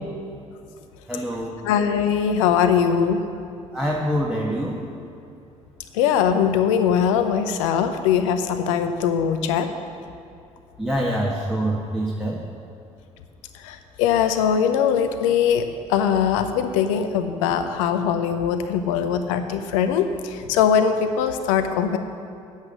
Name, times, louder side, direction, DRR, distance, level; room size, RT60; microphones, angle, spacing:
voice 1, 1.1-1.5 3.7-4.8 10.8-12.4, equal, 5° right, -3 dB, 1.5 m, -25 dB
voice 2, 1.6-3.2 5.9-9.7 13.6-15.6 15.9-22.0, left 8 dB, 75° left, 9 dB, 0.7 m, -21 dB
9.6 x 8.1 x 6.6 m, 2.6 s
figure-of-eight pair, 50°, 17 cm